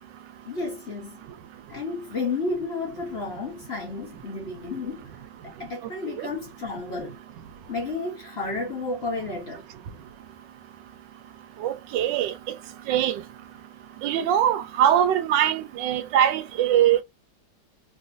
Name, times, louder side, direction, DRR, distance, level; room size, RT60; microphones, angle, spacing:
voice 1, 0.5-1.2 1.7-5.1 5.4-7.2 7.7-9.6, left 3 dB, 45° left, 0.9 m, -32 dB
voice 2, 11.6-12.3 12.9-13.2 14.0-17.0, right 10 dB, 80° right, 1.2 m, -22 dB
3.3 x 2.7 x 2.5 m
omnidirectional pair, 1.9 m